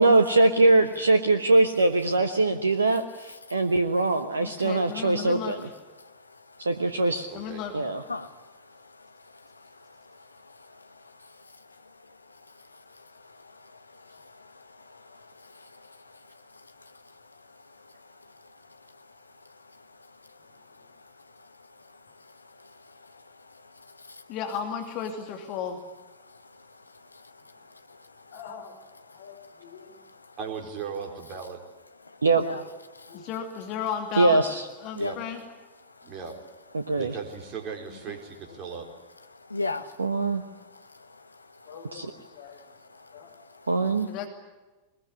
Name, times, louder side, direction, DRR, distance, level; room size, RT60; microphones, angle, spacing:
voice 1, 0.0-5.7 6.6-7.3 7.7-8.0 32.2-32.4 34.2-34.6 36.7-37.1 40.0-40.4 41.9-42.1 43.7-44.1, right 2 dB, 75° right, 1.2 m, -22 dB
voice 2, 3.3-3.7 4.6-4.7 6.0-6.7 8.1-24.4 26.2-28.3 29.1-29.3 29.8-30.4 32.0-33.3 34.9-35.2 35.8-36.1 36.8-37.0 39.3-41.7 42.2-42.6 42.9-44.2, left 3 dB, 80° left, 1.3 m, -43 dB
voice 3, 4.4-5.7 7.3-7.7 24.3-25.8 33.1-34.4 34.8-35.4 44.1-44.3, left 8 dB, 40° left, 2.7 m, -33 dB
voice 4, 7.3-7.6 30.4-31.6 35.0-35.2 36.0-36.4 37.0-38.9, right 6 dB, 35° right, 4.6 m, -37 dB
voice 5, 20.4-20.9 28.3-28.8 29.1-30.0 33.1-33.3 38.5-38.8 41.7-43.3, left 6 dB, 60° left, 4.2 m, -47 dB
22.0 x 21.5 x 9.8 m
figure-of-eight pair, 90°, 0 cm